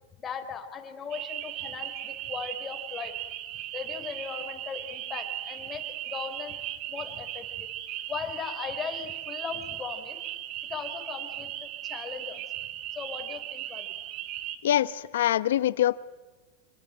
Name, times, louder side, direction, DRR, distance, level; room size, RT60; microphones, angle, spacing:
voice 1, 0.2-3.1 3.7-6.6 6.9-7.7 8.1-10.2 10.7-12.4 12.9-14.1, left 6 dB, 20° left, 5 dB, 4.1 m, -38 dB
sound 1, 1.1-14.6, right 13 dB, 45° right, 2.0 m, -37 dB
voice 2, 14.6-16.0, left 12 dB, 85° left, 16 dB, 0.9 m, -24 dB
26.0 x 24.0 x 9.0 m, 1.2 s
supercardioid pair, 135°, 0 cm